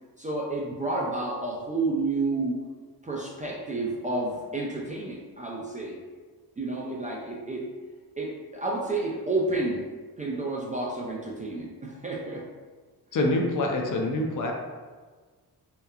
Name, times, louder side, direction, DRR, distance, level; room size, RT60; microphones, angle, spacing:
voice 1, 0.2-2.6 3.0-6.0 6.6-7.6 8.2-9.8 10.2-12.4, right 2 dB, 20° right, -3 dB, 0.3 m, -30 dB
voice 2, 13.1-14.5, left 2 dB, 50° left, 1 dB, 0.5 m, -25 dB
2.9 x 2.2 x 2.2 m, 1.4 s
cardioid pair, 80°, 40 cm